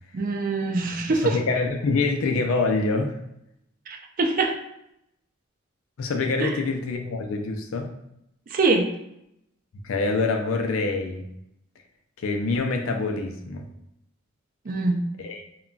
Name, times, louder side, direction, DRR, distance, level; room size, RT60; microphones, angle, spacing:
voice 1, 0.1-1.4 3.9-4.5 6.4-6.5 8.5-8.8 14.7-15.0, right 3 dB, 40° right, 3 dB, 0.4 m, -24 dB
voice 2, 1.2-3.2 6.0-7.9 9.8-11.3 12.2-13.7 15.2-15.4, left 3 dB, 80° left, 4 dB, 0.4 m, -25 dB
2.2 x 2.2 x 3.7 m, 0.80 s
head